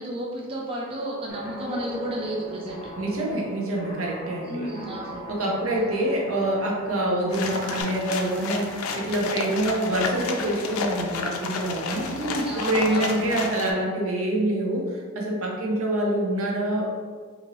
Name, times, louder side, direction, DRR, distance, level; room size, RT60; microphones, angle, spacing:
voice 1, 0.0-2.9 4.5-5.2 6.0-6.1 12.1-13.3, right 1 dB, 25° right, -3 dB, 0.5 m, -32 dB
Guitar, 1.3-7.8, equal, 35° left, 0.6 m, -40 dB
voice 2, 3.0-4.8 5.3-12.1 12.5-16.9, right 1 dB, 85° right, -2 dB, 0.7 m, -26 dB
sound 1, 7.3-13.7, left 4 dB, 80° left, 0.4 m, -31 dB
2.8 x 2.6 x 3.0 m, 1.5 s
head